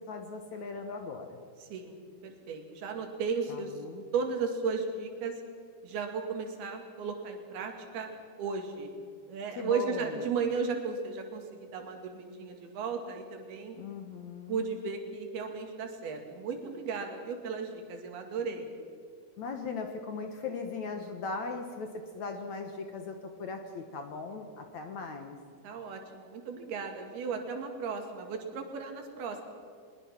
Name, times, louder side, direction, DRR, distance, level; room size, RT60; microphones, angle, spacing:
voice 1, 0.1-1.4 3.5-4.1 9.6-10.3 13.8-14.7 19.4-25.4, left 4 dB, 60° left, 5 dB, 2.1 m, -39 dB
voice 2, 2.2-3.7 4.1-5.4 5.8-8.1 8.4-8.9 9.3-13.8 14.5-18.7 25.6-29.4, right 5 dB, 75° right, 4 dB, 4.1 m, -35 dB
22.5 x 21.5 x 5.9 m, 2.1 s
omnidirectional pair, 4.5 m